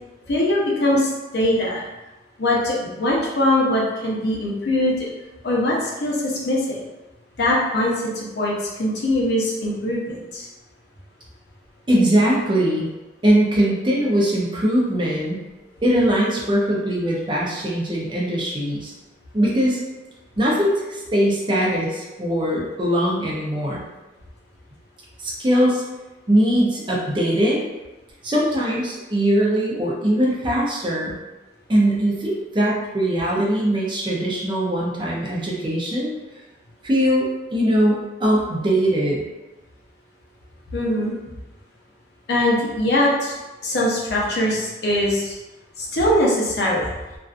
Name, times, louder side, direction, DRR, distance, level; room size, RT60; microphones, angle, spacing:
voice 1, 0.3-1.8 2.4-5.1 5.4-6.8 7.4-8.5 8.8-10.5 40.7-41.1 42.3-43.3 43.6-45.4 45.8-46.9, left 1 dB, 65° left, -4 dB, 0.6 m, -21 dB
voice 2, 11.9-12.9 13.2-15.4 15.8-18.9 19.3-19.8 20.4-23.8 25.2-25.8 26.3-27.6 28.2-31.1 31.7-36.1 36.8-39.2, right 1 dB, 25° right, -4 dB, 0.5 m, -21 dB
2.5 x 2.2 x 2.4 m, 1.1 s
head